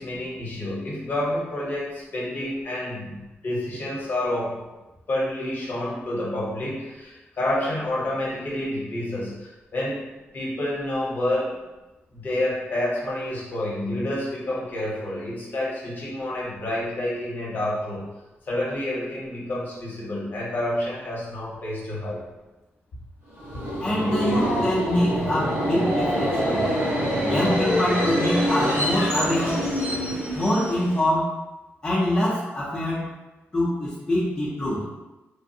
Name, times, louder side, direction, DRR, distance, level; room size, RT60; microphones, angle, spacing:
voice 1, 0.0-4.6 5.1-10.0 10.3-11.6 12.1-18.1 18.5-22.2, left 1 dB, 50° left, -5 dB, 0.9 m, -29 dB
Subway metro underground, 23.3-31.1, equal, 65° right, 1.2 m, -25 dB
voice 2, 23.8-26.6 27.2-29.7 30.3-31.3 31.8-33.1 33.5-34.8, left 1 dB, 20° left, -8 dB, 0.6 m, -24 dB
3.4 x 2.1 x 2.7 m, 1.1 s
wide cardioid pair, 130°, 4 cm